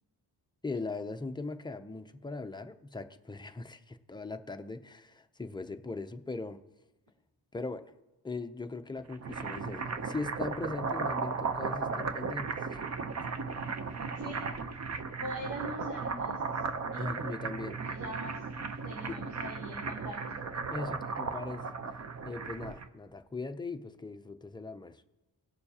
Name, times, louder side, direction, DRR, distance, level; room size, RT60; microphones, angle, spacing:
voice 1, 0.6-6.6 7.5-7.9 8.2-12.8 13.9-14.0 17.0-17.8 19.1-19.2 20.7-21.7 22.2-25.0, left 3 dB, 10° left, 7 dB, 0.5 m, -40 dB
sound 1, 9.0-22.9, right 4 dB, 40° right, 0.7 m, -36 dB
voice 2, 13.9-14.4 15.2-16.6 16.9-17.1 17.8-18.4 18.8-20.4, right 1 dB, 65° right, -6 dB, 3.2 m, -42 dB
18.5 x 6.8 x 2.8 m, 1.0 s
wide cardioid pair, 115°, 43 cm